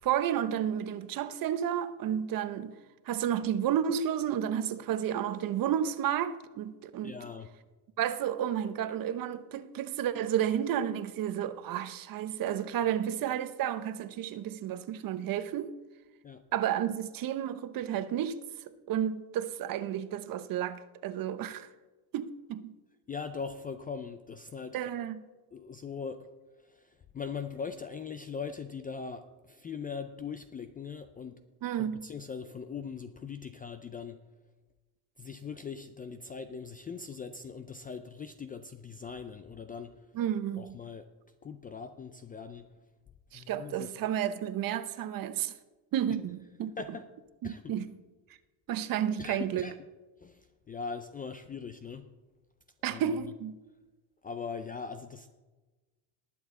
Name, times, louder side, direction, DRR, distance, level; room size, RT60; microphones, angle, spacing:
voice 1, 0.0-2.8 3.1-7.2 8.0-15.7 16.5-18.4 18.9-21.7 22.1-22.7 24.7-25.2 31.6-32.1 40.2-40.8 43.3-45.5 45.9-46.7 47.4-47.9 48.7-49.7 52.8-53.5, right 10 dB, 45° right, 0.8 m, -31 dB
voice 2, 7.0-7.5 16.2-16.4 23.1-24.8 25.5-26.3 26.6-31.4 31.8-34.2 35.2-40.1 40.6-41.1 41.4-42.7 43.3-43.9 46.8-47.0 47.4-47.8 49.2-49.7 50.2-52.1 52.9-53.3 54.2-55.3, left 5 dB, 20° left, 0.3 m, -41 dB
19.5 x 7.1 x 3.7 m
supercardioid pair, 115°, 49 cm